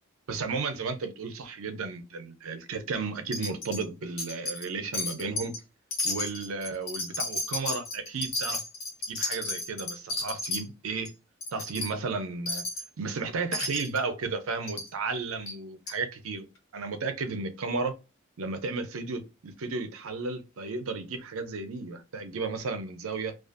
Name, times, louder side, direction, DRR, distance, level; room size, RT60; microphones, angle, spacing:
voice 1, 0.3-5.6 6.0-8.6 9.1-11.1 11.5-12.6 13.0-16.5 16.7-17.9 18.4-23.4, right 4 dB, 75° right, 0.5 m, -33 dB
Wind chime, 3.3-3.8 4.2-4.7 4.9-5.6 5.9-10.6 11.0-11.1 11.4-11.9 12.5-12.9 13.5-14.0 14.7-14.9 15.5-15.6 15.9-16.0, left 2 dB, 70° left, 1.2 m, -33 dB
2.4 x 2.4 x 2.4 m
head